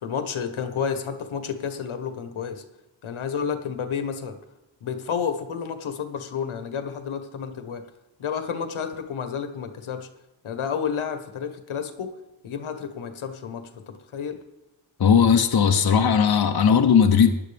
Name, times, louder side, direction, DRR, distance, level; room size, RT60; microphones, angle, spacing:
voice 1, 0.0-2.6 3.0-4.4 4.8-7.9 8.2-10.1 10.4-12.2 12.4-14.4, left 7 dB, 75° left, 8 dB, 1.3 m, -30 dB
voice 2, 15.0-17.3, left 7 dB, 45° left, 4 dB, 0.9 m, -17 dB
16.5 x 10.5 x 3.5 m, 0.99 s
wide cardioid pair, 130°, 49 cm